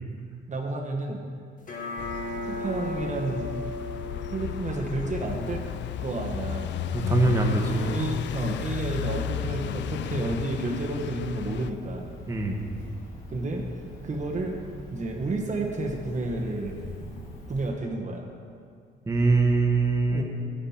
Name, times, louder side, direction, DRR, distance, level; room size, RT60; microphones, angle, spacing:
voice 1, 0.5-1.2 2.4-3.5 4.3-5.6 6.0-6.7 7.6-12.2 13.3-13.6 14.0-14.6 14.9-16.8 17.5-18.3 20.1-20.2, right 2 dB, 35° right, 0 dB, 1.1 m, -31 dB
sound 1, 1.6-6.6, left 2 dB, 40° left, 1.9 m, -37 dB
sound 2, 2.0-11.7, left 10 dB, 65° left, 0.4 m, -33 dB
Cricket, 5.2-17.7, left 1 dB, 85° left, 2.1 m, -43 dB
voice 2, 6.9-7.8 12.3-12.6 19.1-20.2, right 3 dB, 15° right, 1 dB, 1.3 m, -23 dB
10.0 x 9.3 x 4.3 m, 2.2 s
cardioid pair, 90°, 20 cm